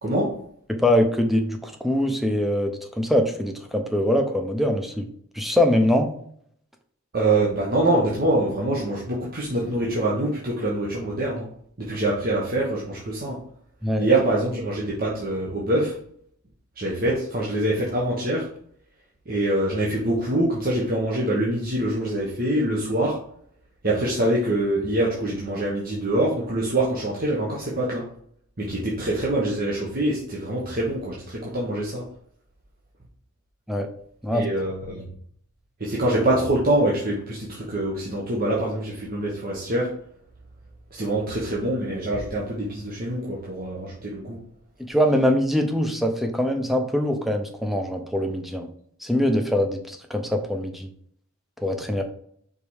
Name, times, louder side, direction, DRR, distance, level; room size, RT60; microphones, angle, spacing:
voice 1, 0.0-0.4 7.1-11.5 11.8-13.4 14.0-16.0 16.8-18.5 19.3-23.2 23.8-28.1 28.6-32.1 34.3-35.1 35.8-40.0 40.9-44.4, right 1 dB, 40° right, -4 dB, 1.2 m, -24 dB
voice 2, 0.7-5.1 5.3-6.1 13.8-14.1 33.7-33.9 34.2-34.5 44.8-48.7 49.0-50.9 51.6-52.0, left 1 dB, ahead, 4 dB, 0.7 m, -23 dB
5.3 x 4.2 x 4.8 m, 0.63 s
head